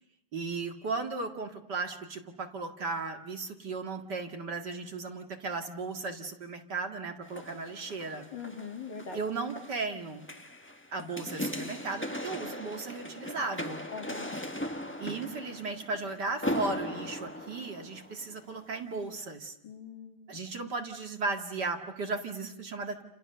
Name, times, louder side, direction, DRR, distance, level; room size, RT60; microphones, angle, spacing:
voice 1, 0.3-8.3 9.1-10.3 10.9-13.8 15.0-19.6 20.3-23.0, right 3 dB, 50° right, 4 dB, 2.5 m, -36 dB
sound 1, 7.2-18.5 19.0-19.1, left 1 dB, 5° left, 1.3 m, -39 dB
voice 2, 8.3-9.2 13.9-14.3 19.6-20.4, left 5 dB, 55° left, 4 dB, 3.1 m, -42 dB
30.0 x 28.5 x 6.7 m, 0.78 s
omnidirectional pair, 2.4 m